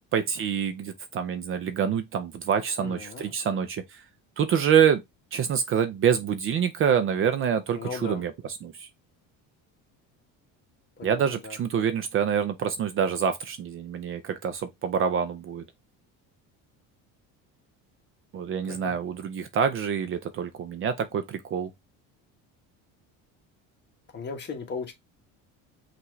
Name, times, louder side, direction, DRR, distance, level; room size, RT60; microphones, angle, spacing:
voice 1, 0.1-4.0 4.4-5.0 5.3-8.3 8.6-8.9 11.0-15.6 18.3-21.7, right 8 dB, 40° right, 0.5 m, -26 dB
voice 2, 2.8-3.3 7.7-8.2 11.0-11.6 18.6-18.9 24.1-24.9, left 4 dB, 30° left, 1.2 m, -37 dB
5.7 x 2.6 x 3.0 m
cardioid pair, 140°, 34 cm